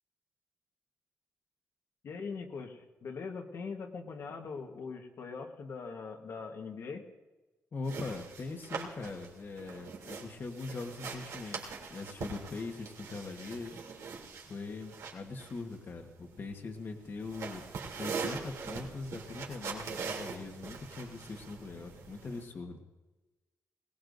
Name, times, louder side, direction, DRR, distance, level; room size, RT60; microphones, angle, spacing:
voice 1, 2.0-7.0, left 5 dB, 60° left, 2 dB, 1.3 m, -41 dB
voice 2, 7.7-13.8 14.5-17.6 18.0-22.8, left 3 dB, 40° left, 4 dB, 1.3 m, -41 dB
sound 1, 7.8-22.4, right 5 dB, 80° right, 3.0 m, -42 dB
21.0 x 18.5 x 2.6 m, 1.2 s
wide cardioid pair, 155°, 5 cm